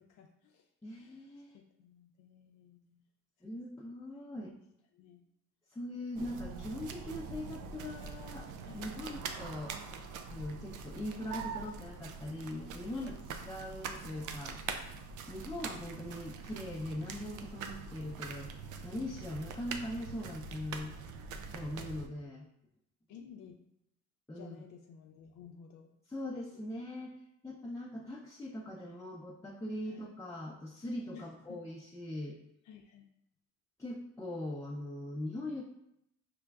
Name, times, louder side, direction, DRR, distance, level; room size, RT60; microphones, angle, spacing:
voice 1, 0.0-1.2 1.5-3.0 3.4-3.5 4.1-4.3 4.9-5.2 6.3-6.6 8.6-8.9 12.9-13.3 18.1-18.3 19.2-19.3 21.8-22.1 23.1-23.6 24.3-25.9 28.8-28.9 29.8-30.1 31.1-31.6 32.2-32.3 32.6-33.1, left 7 dB, 85° left, 2 dB, 0.5 m, -55 dB
voice 2, 0.8-1.6 3.4-4.6 5.7-8.5 8.7-9.8 10.3-13.1 13.4-14.6 15.3-18.5 18.8-21.0 21.5-22.5 24.3-24.6 26.1-27.2 27.4-32.4 33.8-35.6, left 1 dB, 10° left, -6 dB, 0.5 m, -41 dB
sound 1, 6.1-22.1, right 5 dB, 85° right, 0.5 m, -44 dB
4.9 x 3.3 x 2.3 m, 0.80 s
cardioid pair, 90°, 30 cm